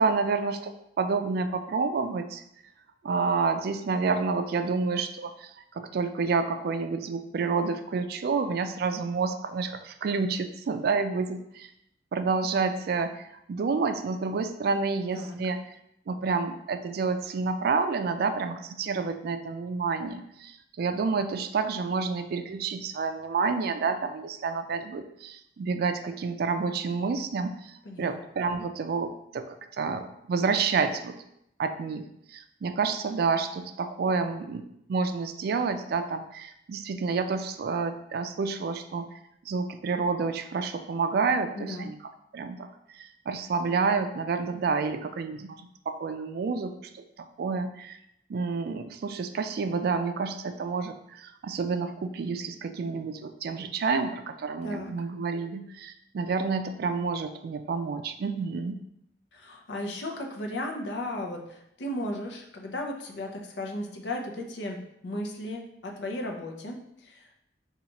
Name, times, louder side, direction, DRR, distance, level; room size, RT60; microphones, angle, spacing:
voice 1, 0.0-2.4 3.0-11.7 12.1-15.6 16.1-31.2 31.6-39.1 39.5-42.0 42.3-42.7 42.9-48.0 48.3-58.8, right 4 dB, 60° right, 8 dB, 0.3 m, -29 dB
voice 2, 27.8-28.2 41.6-41.9 54.6-54.9 59.3-67.3, left 1 dB, 80° left, 2 dB, 0.6 m, -35 dB
5.2 x 2.4 x 2.9 m, 0.78 s
head